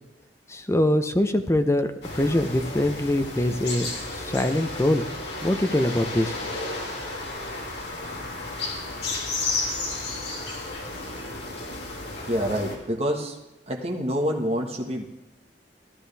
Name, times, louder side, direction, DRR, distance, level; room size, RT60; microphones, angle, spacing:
voice 1, 0.5-5.1 5.4-6.4, left 1 dB, 15° left, 8 dB, 0.7 m, -23 dB
sound 1, 2.0-12.8, left 2 dB, 65° left, 2.4 m, -33 dB
voice 2, 12.3-13.4 13.7-15.0, equal, 35° right, 1 dB, 1.5 m, -27 dB
14.0 x 12.0 x 3.4 m, 0.99 s
head